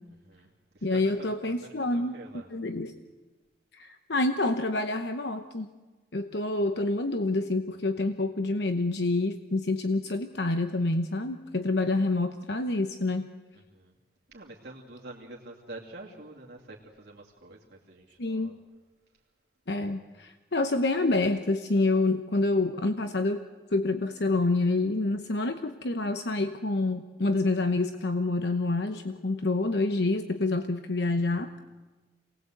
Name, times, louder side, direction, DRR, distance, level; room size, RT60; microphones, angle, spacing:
voice 1, 0.2-1.3 1.6-2.5 13.7-13.9 14.3-18.5, right 2 dB, 60° right, -4 dB, 2.7 m, -47 dB
voice 2, 0.8-2.2 2.5-2.9 3.7-5.7 6.1-13.3 18.2-18.6 19.7-23.4 23.7-31.6, left 2 dB, 65° left, 8 dB, 0.9 m, -27 dB
27.5 x 19.5 x 8.0 m, 1.3 s
head